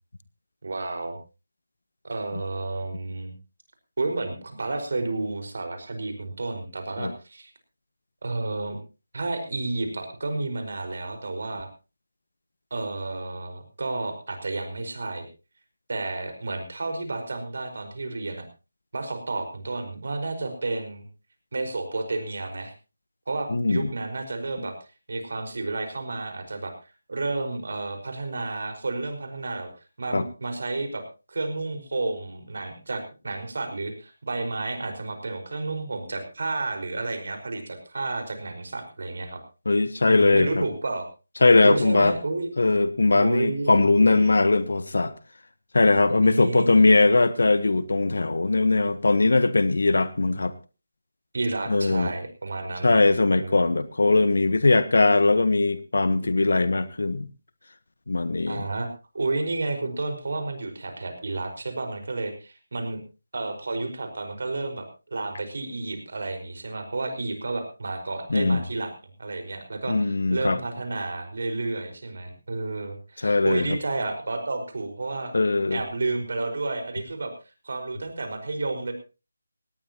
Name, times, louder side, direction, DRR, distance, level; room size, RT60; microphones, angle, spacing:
voice 1, 0.6-1.2 2.0-3.3 4.0-7.5 8.2-8.8 9.1-11.7 12.7-15.3 15.9-18.5 18.9-21.1 21.5-22.7 23.3-24.7 25.1-26.7 27.1-29.7 30.0-31.0 31.3-39.4 40.0-41.1 41.6-42.5 43.1-44.4 46.1-46.9 51.3-53.0 53.3-53.6 58.5-58.9 59.1-63.0 63.3-68.9 69.2-75.3 75.7-77.3 77.6-78.9, right 2 dB, 55° right, 6 dB, 5.0 m, -31 dB
voice 2, 23.5-23.9 30.1-30.2 39.6-40.6 41.4-42.2 42.6-45.1 45.7-50.5 51.7-52.1 52.8-57.3 58.1-58.6 68.3-68.6 69.9-70.6 73.2-73.8 75.3-75.8, left 3 dB, 65° left, 14 dB, 1.2 m, -20 dB
19.0 x 18.0 x 3.0 m, 0.32 s
figure-of-eight pair, 160°, 0 cm